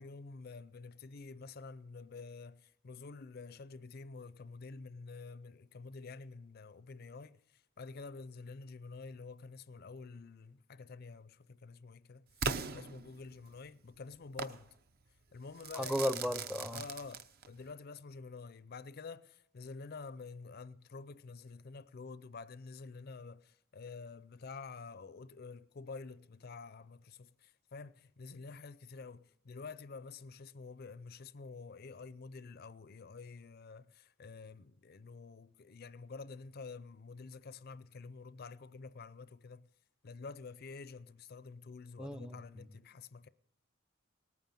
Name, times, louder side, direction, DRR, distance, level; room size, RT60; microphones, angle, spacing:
voice 1, 0.0-14.7 15.3-16.1 16.7-39.7 40.0-43.3, left 4 dB, 50° left, 0.5 m, -49 dB
Crackle / Fireworks, 12.4-13.6 14.4-14.6 15.6-17.6, right 5 dB, 50° right, 0.7 m, -39 dB
voice 2, 15.8-16.8 42.0-42.7, equal, 5° right, 0.5 m, -35 dB
19.0 x 9.2 x 7.5 m
head